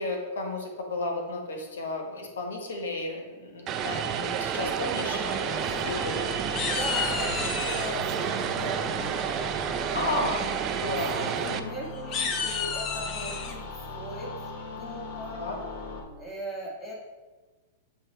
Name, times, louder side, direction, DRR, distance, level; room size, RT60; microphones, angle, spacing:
voice 1, 0.0-5.2 5.9-6.2 9.9-10.5 10.8-11.8 15.3-15.6, left 2 dB, 90° left, 2 dB, 1.2 m, -33 dB
Vehicle, 3.7-11.6, right 8 dB, 30° right, 0.4 m, -30 dB
sound 1, 5.1-16.0, left 3 dB, 60° left, 1.1 m, -39 dB
sound 2, 5.6-6.2 6.5-7.9 9.4-9.8 10.2-10.4 10.7-10.8 11.2-11.3 11.9-13.5, left 6 dB, 35° left, 0.7 m, -32 dB
voice 2, 5.6-6.3 6.6-9.2 11.1-15.4 16.2-17.0, equal, 15° left, -3 dB, 1.6 m, -39 dB
7.9 x 2.9 x 4.4 m, 1.3 s
hypercardioid pair, 135°, 0 cm